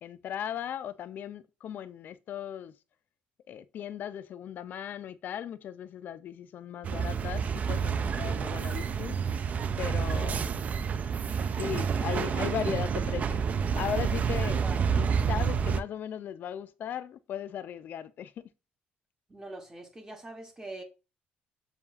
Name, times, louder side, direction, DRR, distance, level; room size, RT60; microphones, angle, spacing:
voice 1, 0.0-2.7 3.5-9.2 9.8-10.5 11.5-13.4 13.8-14.6 15.0-18.3, left 9 dB, 60° left, 0.4 m, -37 dB
sound 1, 6.8-15.8, right 6 dB, 40° right, 0.3 m, -29 dB
voice 2, 19.3-20.8, right 2 dB, 20° right, 0.8 m, -43 dB
6.9 x 2.3 x 2.4 m
cardioid pair, 95°, 4 cm